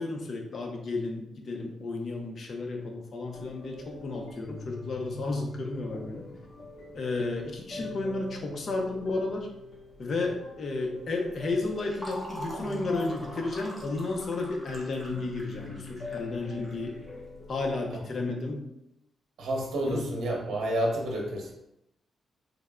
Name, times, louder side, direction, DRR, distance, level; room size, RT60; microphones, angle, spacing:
voice 1, 0.0-6.3 6.9-9.5 10.0-17.0 17.5-18.6 19.9-20.1, left 3 dB, 45° left, 2 dB, 0.5 m, -32 dB
sound 1, 3.3-18.0, left 2 dB, 60° left, 0.9 m, -43 dB
Fill (with liquid), 11.3-17.7, equal, 5° right, 0.7 m, -44 dB
voice 2, 19.4-21.5, right 1 dB, 65° right, -1 dB, 0.8 m, -30 dB
3.4 x 2.1 x 3.5 m, 0.83 s
wide cardioid pair, 175°, 0 cm